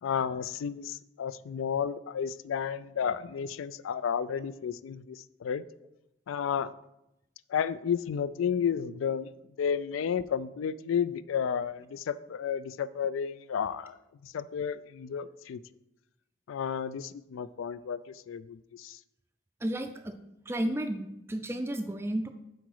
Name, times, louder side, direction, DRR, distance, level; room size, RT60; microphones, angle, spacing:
voice 1, 0.0-5.6 6.3-6.7 7.5-9.3 9.6-13.9 14.2-15.6 16.5-19.0, left 7 dB, 90° left, 17 dB, 0.3 m, -32 dB
voice 2, 19.6-20.2 20.5-22.3, right 1 dB, 15° right, 7 dB, 0.3 m, -32 dB
7.8 x 4.7 x 4.7 m, 0.88 s
head